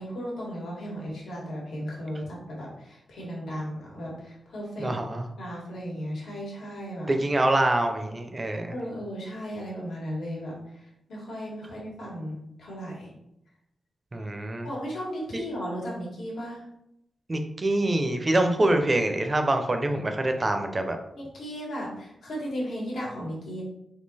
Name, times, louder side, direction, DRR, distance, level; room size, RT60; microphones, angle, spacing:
voice 1, 0.0-4.9 5.4-7.1 8.7-13.1 14.6-16.6 21.1-23.6, equal, 85° left, -3 dB, 1.5 m, -35 dB
voice 2, 4.8-5.3 7.1-8.7 14.1-14.7 15.3-15.4 17.3-21.0, right 1 dB, 25° right, 5 dB, 0.5 m, -25 dB
3.7 x 2.8 x 4.1 m, 0.79 s
wide cardioid pair, 160°, 0 cm